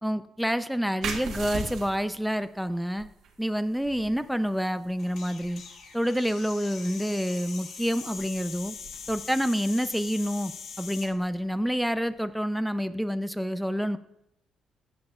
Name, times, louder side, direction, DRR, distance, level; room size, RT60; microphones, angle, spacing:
voice 1, 0.0-3.1 3.4-5.6 5.9-8.7 9.1-10.5 10.8-14.0, equal, ahead, 11 dB, 0.6 m, -28 dB
sound 1, 1.0-12.3, right 4 dB, 75° right, 1.4 m, -43 dB
sound 2, 5.0-11.1, left 5 dB, 70° left, 1.7 m, -42 dB
15.0 x 8.5 x 2.5 m, 0.82 s
cardioid pair, 90°, 0 cm